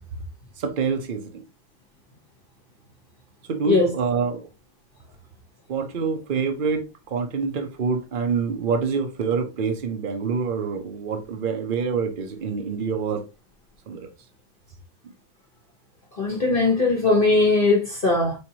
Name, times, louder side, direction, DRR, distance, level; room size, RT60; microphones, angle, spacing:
voice 1, 0.6-1.4 3.5-4.5 5.7-13.2 13.9-14.1, right 5 dB, 60° right, 0.5 m, -26 dB
voice 2, 16.2-18.4, left 3 dB, 40° left, 0.8 m, -19 dB
4.6 x 3.4 x 2.8 m
omnidirectional pair, 2.0 m